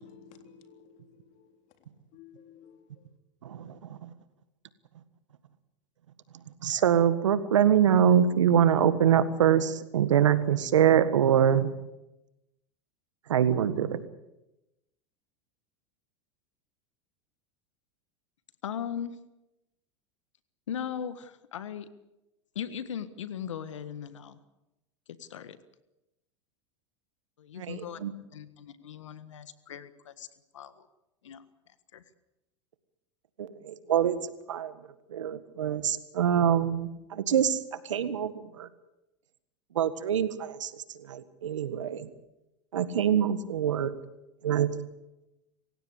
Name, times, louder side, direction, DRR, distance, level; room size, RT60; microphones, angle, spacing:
voice 1, 0.0-1.5 2.1-3.1, left 6 dB, 55° left, 3.6 m, -54 dB
voice 2, 3.4-4.1 6.6-11.7 13.3-14.0 27.6-28.1 33.4-34.7 35.1-38.7 39.7-42.1 42.7-43.9 44.4-44.7, right 9 dB, 90° right, 1.7 m, -25 dB
voice 3, 18.6-19.2 20.7-21.9 22.5-24.4 25.2-25.6 27.4-28.0 28.3-30.3 30.5-30.9 31.2-31.4 31.9-32.0, left 8 dB, 85° left, 1.6 m, -38 dB
26.5 x 16.0 x 8.3 m
hypercardioid pair, 100°, 15 cm